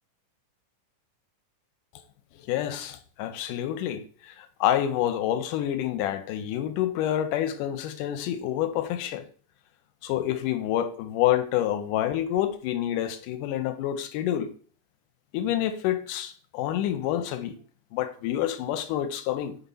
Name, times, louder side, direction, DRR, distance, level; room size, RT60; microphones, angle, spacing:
voice 1, 2.5-9.2 10.0-14.5 15.3-17.6 17.9-19.6, left 11 dB, 85° left, 2.2 m, -28 dB
5.8 x 4.2 x 5.4 m
omnidirectional pair, 3.7 m